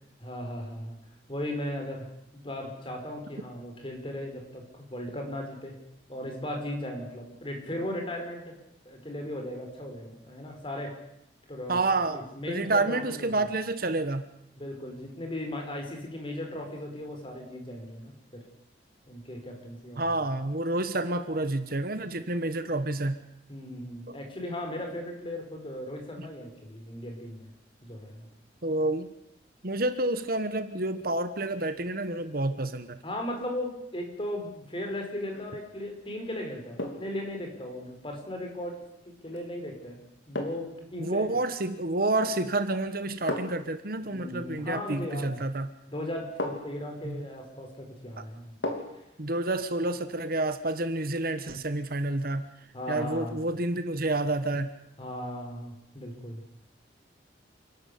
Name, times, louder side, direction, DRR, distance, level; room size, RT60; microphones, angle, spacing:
voice 1, 0.2-1.0 1.3-2.1 2.4-5.8 6.1-8.5 8.8-11.0 11.5-13.3 14.6-18.4 19.1-20.1 23.5-27.5 27.8-28.3 33.0-40.0 40.3-41.3 44.1-45.4 45.9-48.6 52.7-53.4 55.0-56.5, left 1 dB, 30° left, 2 dB, 4.9 m, -37 dB
voice 2, 11.7-12.2 12.5-14.2 20.0-23.2 24.1-24.2 28.6-29.1 29.6-33.0 41.0-45.7 47.0-47.2 49.2-52.4 52.9-54.7, right 2 dB, 55° right, 10 dB, 1.3 m, -29 dB
sound 1, 35.2-35.6 36.8-37.2 39.3-39.5 40.3-40.8 42.1-42.5 43.3-43.7 45.4-45.5 46.4-46.9 48.6-49.1 49.5-49.6, left 1 dB, 80° left, 3.3 m, -35 dB
28.0 x 12.0 x 8.5 m, 0.81 s
head